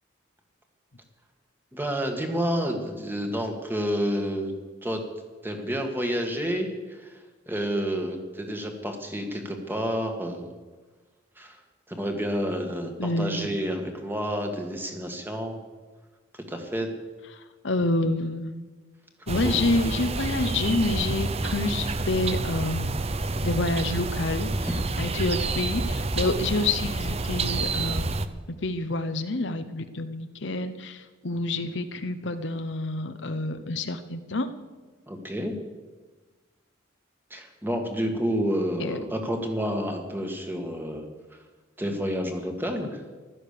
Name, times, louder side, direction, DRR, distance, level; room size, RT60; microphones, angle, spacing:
voice 1, 1.7-4.5 4.8-5.0 5.4-7.2 7.5-10.5 11.4-11.6 11.9-15.6 16.5-16.9 19.4-19.5 35.1-35.5 37.3-41.1 41.8-43.0, equal, 10° right, 3 dB, 1.9 m, -29 dB
voice 2, 13.0-13.6 17.3-18.5 19.3-22.9 23.4-28.2 28.6-34.5 38.8-39.0, left 2 dB, 65° left, 9 dB, 0.9 m, -28 dB
sound 1, 19.3-28.3, right 3 dB, 30° right, 0.7 m, -28 dB
15.5 x 12.5 x 6.8 m, 1.3 s
head